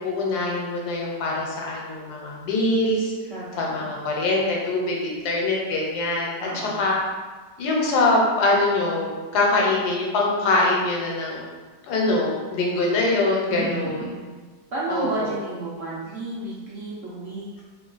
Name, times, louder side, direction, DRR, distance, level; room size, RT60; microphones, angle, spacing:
voice 1, 0.0-3.1 3.6-6.5 6.8-7.0 7.6-11.5 11.9-14.0 14.9-15.3, left 2 dB, 75° left, -2 dB, 1.2 m, -23 dB
voice 2, 3.3-3.9 6.4-6.9 13.5-14.2 14.7-17.6, right 2 dB, 70° right, -7 dB, 0.7 m, -32 dB
2.9 x 2.2 x 3.8 m, 1.3 s
omnidirectional pair, 1.8 m